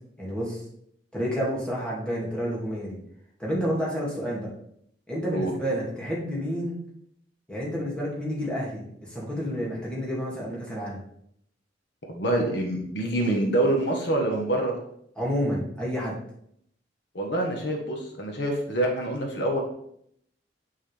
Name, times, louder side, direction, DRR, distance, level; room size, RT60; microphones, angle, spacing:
voice 1, 0.2-0.6 1.1-3.0 3.4-4.5 5.1-6.8 7.5-11.0 15.2-16.2, equal, 5° left, -6 dB, 2.3 m, -29 dB
voice 2, 12.1-14.7 17.1-19.6, right 1 dB, 65° left, 1 dB, 1.3 m, -26 dB
8.7 x 5.7 x 3.4 m, 0.70 s
head